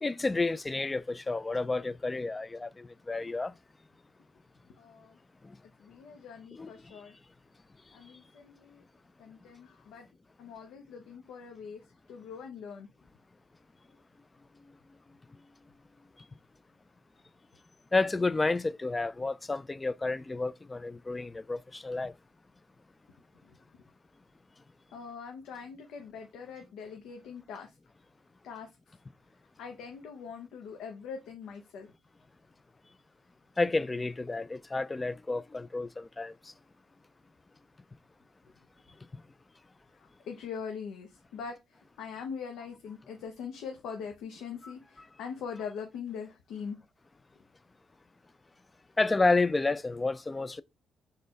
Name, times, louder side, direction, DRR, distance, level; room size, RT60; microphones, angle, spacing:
voice 1, 0.0-3.5 6.5-6.7 17.9-22.1 33.6-36.3 44.6-44.7 49.0-50.6, left 3 dB, 20° left, 0.3 m, -30 dB
voice 2, 4.8-5.2 5.8-7.2 7.9-8.8 9.2-10.1 10.4-12.9 23.5-23.6 24.9-27.7 28.4-29.0 29.6-31.9 40.0-46.8, left 6 dB, 85° left, 0.8 m, -42 dB
4.2 x 3.2 x 3.9 m
cardioid pair, 90°, 0 cm